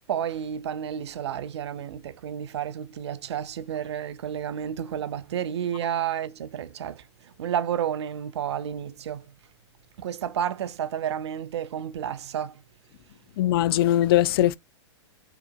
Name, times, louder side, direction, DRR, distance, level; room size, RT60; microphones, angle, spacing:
voice 1, 0.0-9.3 10.0-12.6, right 9 dB, 75° right, 0.6 m, -31 dB
voice 2, 13.4-14.6, left 13 dB, 60° left, 0.4 m, -20 dB
4.9 x 2.9 x 2.2 m
hypercardioid pair, 120°, 14 cm